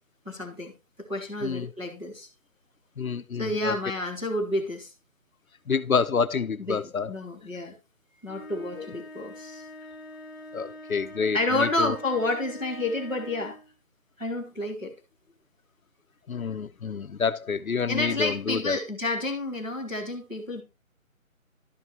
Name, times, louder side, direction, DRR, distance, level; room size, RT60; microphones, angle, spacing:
voice 1, 0.2-0.7 1.1-2.3 3.4-4.9 6.6-7.7 8.2-9.6 11.3-13.6 14.2-14.9 17.9-20.6, left 2 dB, 5° right, 1.5 m, -30 dB
voice 2, 3.0-3.7 5.7-7.1 8.8-8.9 10.5-11.9 16.3-18.8, left 5 dB, 80° left, 1.0 m, -28 dB
sound 1, 8.2-13.7, left 1 dB, 15° left, 0.8 m, -44 dB
12.0 x 5.9 x 4.4 m
figure-of-eight pair, 170°, 42 cm